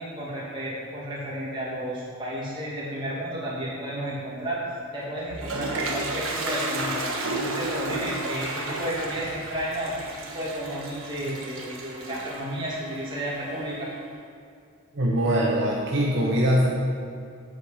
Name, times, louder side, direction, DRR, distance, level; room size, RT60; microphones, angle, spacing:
voice 1, 0.0-4.6 4.9-7.0 7.3-9.9 10.2-13.9, equal, 20° right, -7 dB, 2.4 m, -32 dB
Toilet flush, 5.0-13.9, right 2 dB, 70° right, 1.2 m, -33 dB
voice 2, 14.9-16.7, equal, 55° right, -4 dB, 1.0 m, -22 dB
8.3 x 4.9 x 6.9 m, 2.4 s
head